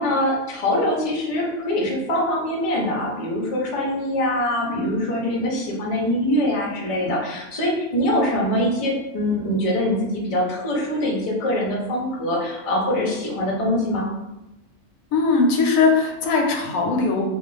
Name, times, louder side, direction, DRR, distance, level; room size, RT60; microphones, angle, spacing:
voice 1, 0.0-14.1, left 1 dB, 45° left, -3 dB, 0.4 m, -23 dB
voice 2, 15.1-17.2, left 4 dB, 85° left, 2 dB, 1.0 m, -19 dB
2.4 x 2.3 x 3.1 m, 0.97 s
omnidirectional pair, 1.4 m